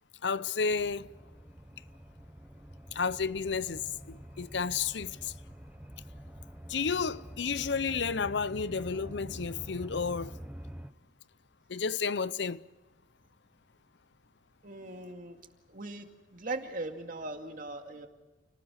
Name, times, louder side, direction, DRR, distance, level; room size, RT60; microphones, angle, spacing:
voice 1, 0.2-1.1 2.9-5.3 6.7-10.4 11.7-12.6, left 5 dB, 65° left, 0.6 m, -32 dB
sound 1, 0.7-10.9, equal, 5° right, 0.7 m, -47 dB
voice 2, 14.6-15.4 15.7-18.1, right 2 dB, 45° right, 2.3 m, -39 dB
29.0 x 19.0 x 6.4 m
head